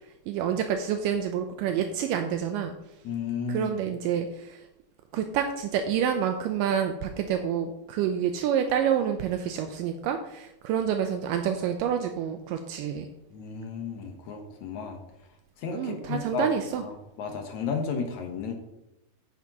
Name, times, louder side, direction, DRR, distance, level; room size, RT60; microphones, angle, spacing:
voice 1, 0.3-2.7 3.5-4.6 5.1-13.1 15.7-16.8, right 8 dB, 85° right, 6 dB, 2.0 m, -28 dB
voice 2, 3.0-3.8 13.3-15.0 15.6-16.5 16.8-16.9 17.2-18.5, left 5 dB, 65° left, 3 dB, 1.9 m, -33 dB
10.5 x 9.3 x 3.0 m, 0.86 s
omnidirectional pair, 4.5 m